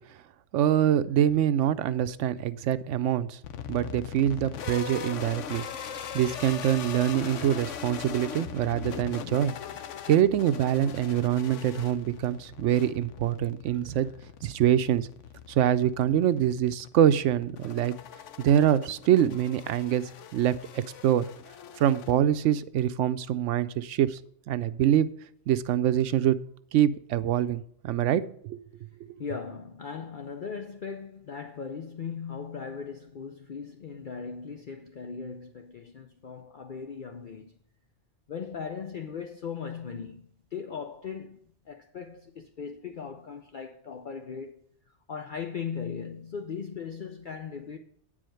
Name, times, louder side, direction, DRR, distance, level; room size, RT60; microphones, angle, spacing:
voice 1, 0.5-3.4 3.7-5.6 6.1-9.5 10.1-14.1 14.4-15.1 15.5-18.0 18.4-20.0 20.3-21.2 21.8-24.2 24.5-25.1 25.5-26.4 26.7-28.6, right 10 dB, 85° right, 0.9 m, -25 dB
sound 1, 3.4-22.6, left 8 dB, 90° left, 1.1 m, -41 dB
voice 2, 13.7-14.0 29.2-37.6 38.3-44.6 45.1-47.8, left 6 dB, 50° left, 0.7 m, -38 dB
9.2 x 5.0 x 7.6 m
omnidirectional pair, 1.2 m